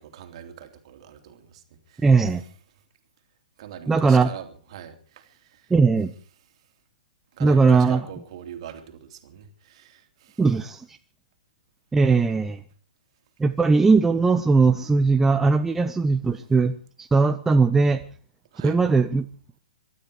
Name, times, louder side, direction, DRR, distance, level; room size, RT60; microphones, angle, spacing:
voice 1, 0.0-1.6 1.9-2.1 3.6-5.7 7.3-10.4 18.5-18.8, right 9 dB, 45° right, 7 dB, 2.9 m, -42 dB
voice 2, 2.0-2.4 3.9-4.3 5.7-6.1 7.4-8.1 10.4-10.8 11.9-12.6 13.4-18.0 18.6-19.3, right 4 dB, 10° right, 8 dB, 0.7 m, -19 dB
24.5 x 12.5 x 4.8 m, 0.40 s
figure-of-eight pair, 115°, 4 cm